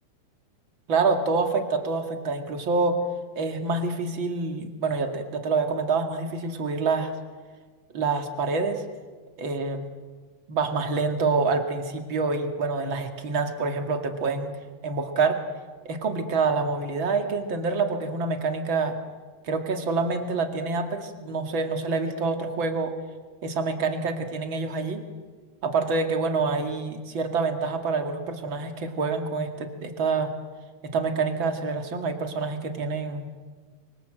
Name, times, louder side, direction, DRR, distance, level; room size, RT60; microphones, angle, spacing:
voice 1, 0.9-3.0 3.4-7.1 7.9-8.8 9.4-9.8 10.5-14.5 14.8-15.4 15.8-19.0 19.4-22.9 23.4-25.0 25.6-30.3 30.9-33.3, right 4 dB, 40° right, 5 dB, 2.5 m, -26 dB
29.5 x 25.0 x 7.7 m, 1.5 s
omnidirectional pair, 4.1 m